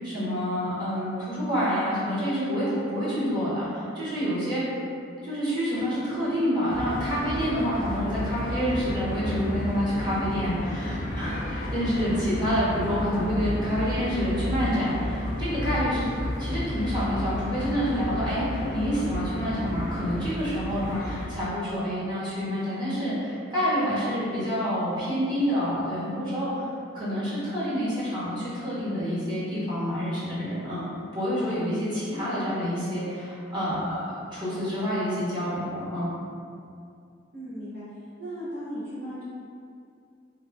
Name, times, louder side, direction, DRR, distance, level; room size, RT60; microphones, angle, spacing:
voice 1, 0.0-4.6 5.2-16.0 16.4-26.7 26.9-34.0 34.3-36.1, equal, 25° right, -12 dB, 0.9 m, -28 dB
sound 1, 6.7-21.3, left 1 dB, 45° left, 0.3 m, -32 dB
voice 2, 12.0-12.5 32.1-32.5 37.3-39.2, equal, 60° right, -14 dB, 0.9 m, -37 dB
2.9 x 2.3 x 2.5 m, 2.4 s
head